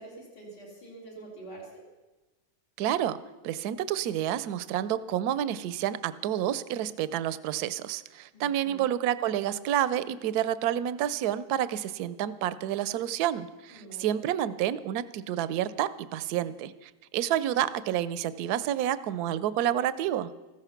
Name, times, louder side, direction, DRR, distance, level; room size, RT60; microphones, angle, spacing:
voice 1, 0.0-1.8 8.3-8.9 13.7-14.1, right 2 dB, 70° left, -3 dB, 4.5 m, -46 dB
voice 2, 2.8-3.2 3.4-20.3, right 11 dB, 70° right, 16 dB, 1.1 m, -29 dB
15.0 x 14.0 x 5.8 m, 1.1 s
omnidirectional pair, 1.9 m